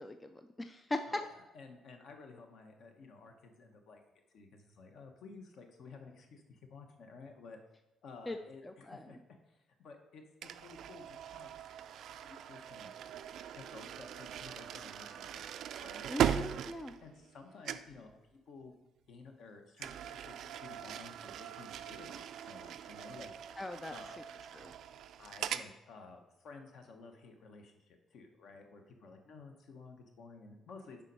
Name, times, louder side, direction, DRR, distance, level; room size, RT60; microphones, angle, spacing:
voice 1, 0.0-1.2 8.3-8.4 8.6-9.1 16.1-16.9 23.6-23.9 24.5-24.7, left 2 dB, 10° left, 7 dB, 0.3 m, -40 dB
voice 2, 1.1-4.0 4.3-7.6 8.0-9.2 9.5-11.5 12.1-12.9 13.5-15.5 15.8-16.4 17.0-18.7 19.1-23.3 23.9-24.2 25.2-31.0, left 4 dB, 55° left, 4 dB, 1.1 m, -53 dB
sound 1, 10.4-17.4 17.6-18.0 19.8-25.7, right 9 dB, 60° right, 0.4 m, -40 dB
7.2 x 5.2 x 5.4 m, 1.0 s
cardioid pair, 175°, 0 cm